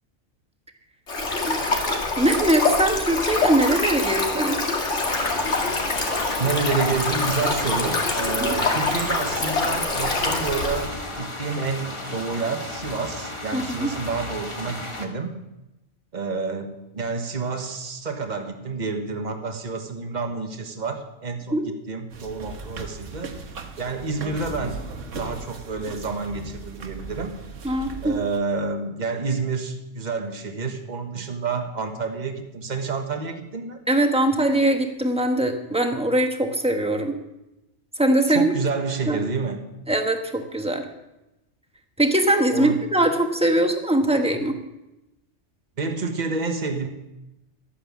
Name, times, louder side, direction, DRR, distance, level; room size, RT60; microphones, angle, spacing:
Stream, 1.1-10.9, left 3 dB, 70° left, 2.4 m, -25 dB
voice 1, 2.2-4.6 13.5-13.9 21.5-21.6 27.6-28.2 33.9-37.2 38.0-38.5 39.1-39.3 39.9-40.8 42.0-44.6, right 1 dB, 5° right, 4 dB, 1.3 m, -21 dB
sound 1, 5.0-15.1, left 2 dB, 25° left, 1.4 m, -34 dB
voice 2, 6.4-15.4 16.1-24.8 25.1-27.4 28.0-33.8 38.3-39.7 42.5-42.8 45.8-46.9, right 4 dB, 40° right, 5 dB, 1.5 m, -29 dB
sound 2, 22.1-28.4, right 4 dB, 90° right, 1.6 m, -37 dB
13.0 x 9.3 x 7.4 m, 0.95 s
omnidirectional pair, 1.3 m